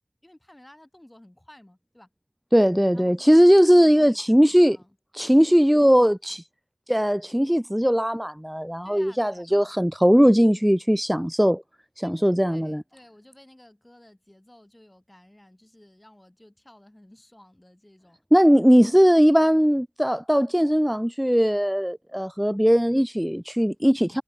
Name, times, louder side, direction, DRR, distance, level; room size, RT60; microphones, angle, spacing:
voice 1, 0.2-2.1 2.9-4.4 4.7-5.0 5.2-6.0 8.8-9.5 12.0-18.2, left 1 dB, 20° left, 3.7 m, -53 dB
voice 2, 2.5-4.8 5.1-6.4 6.9-11.6 12.0-12.8 18.3-24.2, equal, 5° right, 0.3 m, -19 dB
wide cardioid pair, 50°, 0 cm